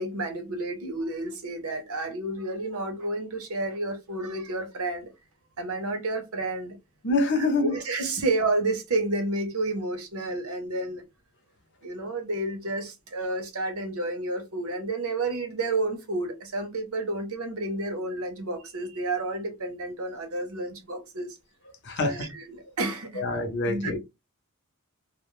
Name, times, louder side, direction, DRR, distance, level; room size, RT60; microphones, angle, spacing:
voice 1, 0.0-5.1 5.6-6.8 7.3-11.0 11.8-21.4 22.0-24.0, right 2 dB, 75° right, 0.8 m, -30 dB
voice 2, 7.0-7.8 21.8-22.1 23.2-24.0, left 2 dB, 55° left, 0.7 m, -25 dB
2.2 x 2.1 x 3.0 m
head